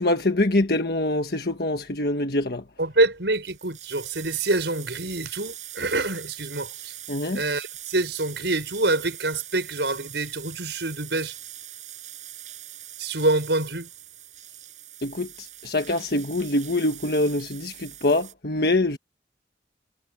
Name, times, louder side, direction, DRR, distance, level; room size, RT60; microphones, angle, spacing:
voice 1, 0.0-2.6 7.1-7.4 15.0-19.0, left 2 dB, 55° left, 1.5 m, -24 dB
voice 2, 2.8-6.9 7.3-11.3 13.0-13.9, right 2 dB, 75° right, 6.0 m, -26 dB
sound 1, 3.0-3.1 3.2-18.3, right 12 dB, 40° right, 5.6 m, -42 dB
head